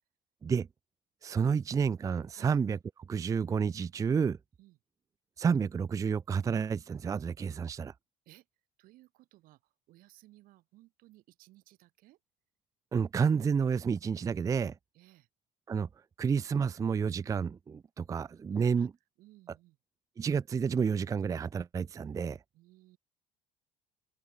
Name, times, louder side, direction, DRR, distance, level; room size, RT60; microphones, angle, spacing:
voice 1, 1.2-2.8 3.1-4.4 5.4-7.9 12.9-14.8 15.7-15.9 16.2-18.9 20.2-22.4, right 6 dB, 20° right, 0.5 m, -30 dB
voice 2, 8.8-12.2 14.9-15.3 18.5-18.9 19.2-19.8 22.5-23.0, right 18 dB, 70° right, 6.4 m, -59 dB
open air
cardioid pair, 125°, 15 cm